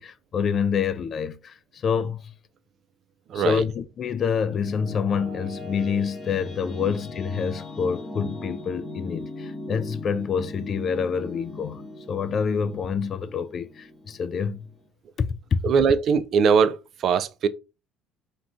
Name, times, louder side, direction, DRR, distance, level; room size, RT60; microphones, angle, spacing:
voice 1, 0.0-2.3 3.3-11.8 12.1-14.7 15.2-15.6, left 6 dB, 45° left, 0.3 m, -27 dB
voice 2, 3.3-3.6 15.6-17.5, right 6 dB, 55° right, 0.3 m, -21 dB
sound 1, 3.8-14.9, left 2 dB, 25° left, 0.9 m, -39 dB
2.4 x 2.2 x 3.4 m
hypercardioid pair, 60°, 0 cm